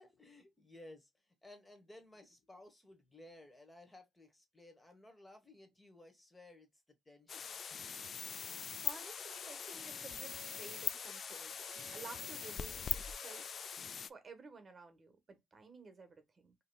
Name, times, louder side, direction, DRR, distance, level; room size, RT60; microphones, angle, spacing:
voice 1, 0.0-7.6, left 1 dB, 15° left, 1.1 m, -58 dB
sound 1, 7.3-14.1, left 6 dB, 50° left, 0.3 m, -42 dB
voice 2, 8.8-11.5 11.9-13.7 14.0-16.6, right 4 dB, 35° right, 1.2 m, -54 dB
Bowed string instrument, 9.1-13.6, right 12 dB, 90° right, 0.5 m, -60 dB
4.8 x 2.9 x 2.2 m
cardioid pair, 90°, 0 cm